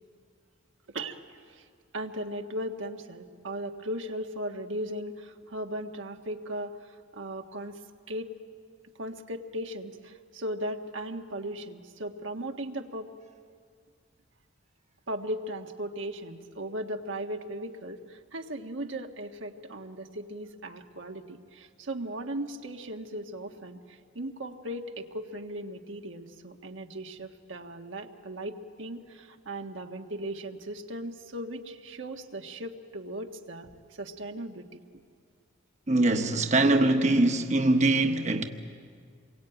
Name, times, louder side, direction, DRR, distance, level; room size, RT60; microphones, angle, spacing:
voice 1, 0.9-1.2 1.5-1.6 1.9-7.8 8.1-8.3 9.0-13.1 15.1-33.7 34.0-34.8, right 1 dB, 85° right, 1.6 m, -37 dB
voice 2, 35.9-38.4, right 2 dB, 40° right, 1.1 m, -23 dB
27.5 x 23.0 x 9.0 m
head